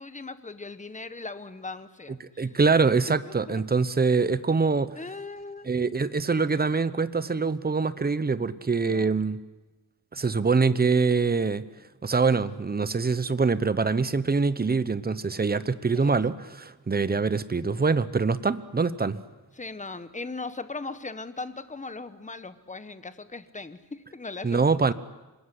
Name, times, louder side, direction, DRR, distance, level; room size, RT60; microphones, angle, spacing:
voice 1, 0.0-2.6 3.2-3.8 5.0-5.7 8.9-9.1 15.9-16.2 19.5-24.9, left 3 dB, 20° left, 12 dB, 1.2 m, -39 dB
voice 2, 2.4-5.0 5.7-9.4 10.1-11.7 12.0-19.2 24.4-24.9, right 4 dB, 25° right, 14 dB, 0.9 m, -24 dB
25.5 x 20.5 x 9.9 m, 1.1 s
wide cardioid pair, 150°, 39 cm